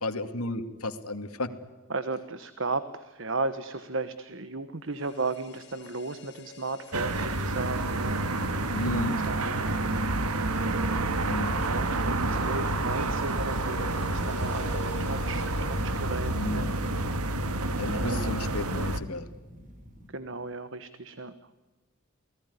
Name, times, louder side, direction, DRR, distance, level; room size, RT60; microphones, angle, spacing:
voice 1, 0.0-1.5 8.7-9.2 11.2-11.6 16.3-16.7 17.8-19.3, left 2 dB, 80° left, 8 dB, 2.4 m, -33 dB
voice 2, 1.9-8.2 8.8-10.0 11.4-16.7 20.1-21.3, right 3 dB, 60° right, 12 dB, 1.2 m, -35 dB
sound 1, 4.9-17.0 17.2-17.3, left 3 dB, 50° left, 1.9 m, -47 dB
sound 2, 6.9-19.0, right 2 dB, 85° right, 1.7 m, -29 dB
sound 3, 7.8-20.1, equal, 35° right, 3.7 m, -49 dB
29.0 x 19.0 x 9.7 m, 1.2 s
head